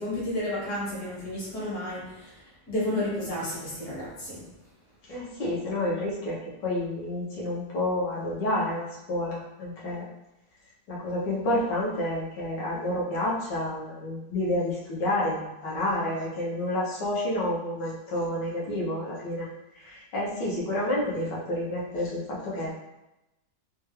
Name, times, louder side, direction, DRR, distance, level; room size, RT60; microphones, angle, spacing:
voice 1, 0.0-2.4 2.7-4.5, left 1 dB, 60° left, -5 dB, 1.8 m, -31 dB
voice 2, 5.1-10.0 10.9-19.5 19.8-22.7, left 1 dB, 85° left, -5 dB, 1.7 m, -29 dB
3.7 x 2.3 x 3.2 m, 0.92 s
omnidirectional pair, 1.8 m